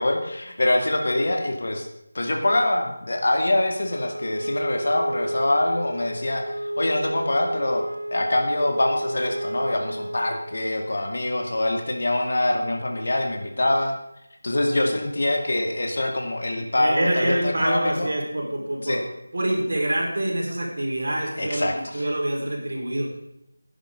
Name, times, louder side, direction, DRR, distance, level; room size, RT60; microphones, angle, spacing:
voice 1, 0.0-1.9 2.1-7.8 8.1-13.9 14.4-18.1 18.8-19.0 21.4-22.0, left 1 dB, 60° left, 2 dB, 2.2 m, -24 dB
Wind instrument woodwind instrument, 3.9-10.7, right 1 dB, 90° right, 1.0 m, -31 dB
voice 2, 16.8-19.0 19.3-23.2, right 1 dB, 60° right, -1 dB, 4.6 m, -26 dB
16.5 x 10.5 x 3.9 m, 0.88 s
figure-of-eight pair, 165°, 0 cm